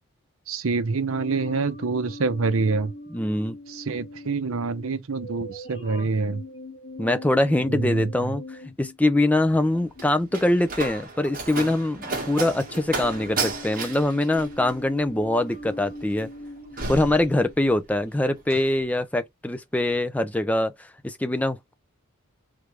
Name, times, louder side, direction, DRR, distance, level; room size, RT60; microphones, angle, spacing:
voice 1, 0.5-2.9 3.7-6.4 7.7-8.1, right 4 dB, 65° right, 0.7 m, -26 dB
sound 1, 1.1-10.5 11.2-11.6 11.9-17.6, left 1 dB, 55° left, 2.1 m, -41 dB
voice 2, 3.1-3.6 7.0-16.3 16.9-21.7, left 1 dB, 5° left, 0.3 m, -23 dB
Slam, 9.5-17.9 18.2-18.7, right 3 dB, 40° right, 1.6 m, -34 dB
3.6 x 3.2 x 3.4 m
head